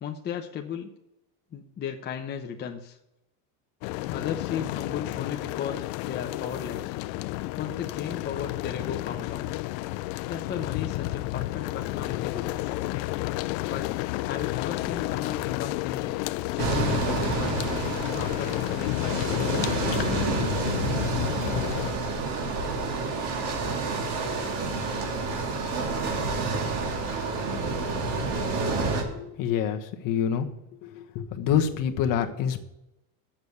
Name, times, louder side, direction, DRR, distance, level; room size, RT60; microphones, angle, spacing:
voice 1, 0.0-0.9 1.5-3.0 4.1-7.0 7.6-9.6 10.3-12.8 13.7-13.9 14.2-16.1 16.5-17.7 18.2-20.2, left 8 dB, 25° left, 3 dB, 0.8 m, -35 dB
sound 1, 3.8-21.9, left 18 dB, 60° left, 0.6 m, -31 dB
sound 2, 16.6-29.0, right 3 dB, 55° right, 2.9 m, -29 dB
voice 2, 29.1-30.5 30.8-32.6, left 8 dB, 45° left, 5 dB, 1.4 m, -27 dB
8.8 x 7.2 x 8.1 m, 0.90 s
supercardioid pair, 140°, 44 cm